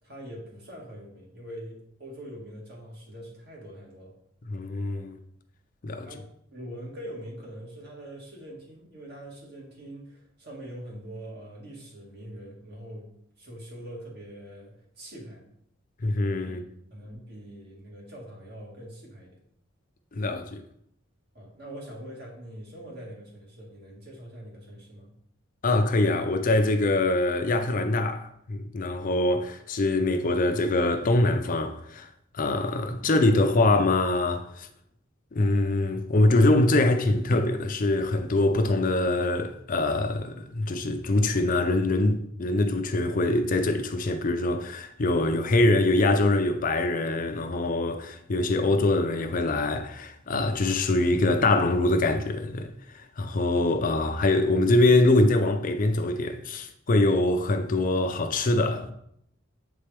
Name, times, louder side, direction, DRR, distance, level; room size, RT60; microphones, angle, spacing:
voice 1, 0.0-4.1 6.0-6.2 6.5-13.1 13.4-15.4 16.4-16.5 16.9-19.4 21.3-25.1, right 1 dB, 50° right, 1.8 m, -43 dB
voice 2, 4.5-5.1 5.8-6.1 16.0-16.6 20.1-20.6 25.6-32.1 32.3-34.7 35.3-52.7 53.2-58.9, left 2 dB, 40° left, 0.5 m, -24 dB
7.4 x 4.3 x 3.4 m
head